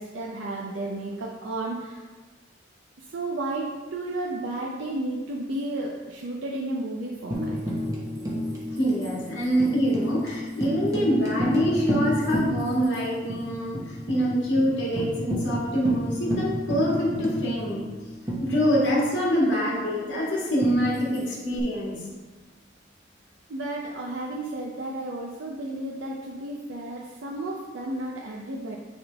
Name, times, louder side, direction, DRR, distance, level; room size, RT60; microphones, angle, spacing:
voice 1, 0.0-2.1 3.0-7.6 23.5-28.8, right 2 dB, 90° right, -2 dB, 0.7 m, -33 dB
Tambourine, 7.3-13.0 13.3-13.4 13.7-14.2 14.6-14.7 15.0-19.1 20.6-21.6, equal, 20° right, 1.4 m, -30 dB
voice 2, 8.7-17.8 18.4-22.0, equal, 65° left, -5 dB, 2.1 m, -25 dB
10.0 x 3.8 x 3.5 m, 1.3 s
head